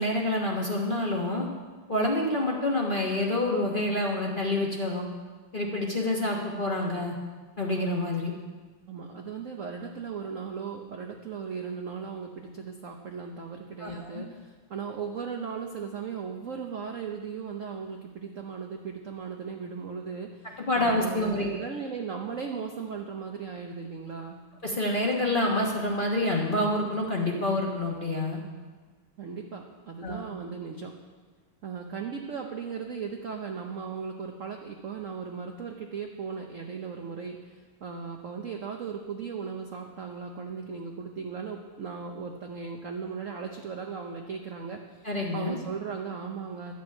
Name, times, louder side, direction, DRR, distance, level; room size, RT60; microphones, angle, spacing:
voice 1, 0.0-1.5 1.9-5.1 5.5-7.1 7.6-8.3 13.8-14.2 20.6-21.7 24.6-28.4 30.0-30.2 45.0-45.6, left 1 dB, 30° left, -1 dB, 1.0 m, -27 dB
voice 2, 8.9-24.4 29.2-30.9 31.6-45.1 45.3-46.7, right 6 dB, 65° right, 2 dB, 0.8 m, -37 dB
12.0 x 6.1 x 8.5 m, 1.4 s
omnidirectional pair, 2.4 m